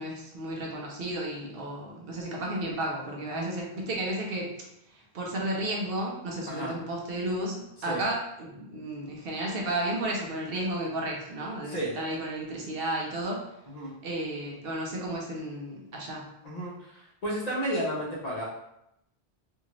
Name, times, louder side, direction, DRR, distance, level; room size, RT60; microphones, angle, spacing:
voice 1, 0.0-4.6 4.9-13.5 14.0-16.3, right 1 dB, 65° right, -1 dB, 0.8 m, -33 dB
voice 2, 3.3-3.8 6.5-6.7 7.9-8.0 11.7-11.9 13.7-13.9 16.4-18.4, right 1 dB, 45° left, -5 dB, 0.8 m, -33 dB
2.7 x 2.4 x 2.9 m, 0.82 s
omnidirectional pair, 1.1 m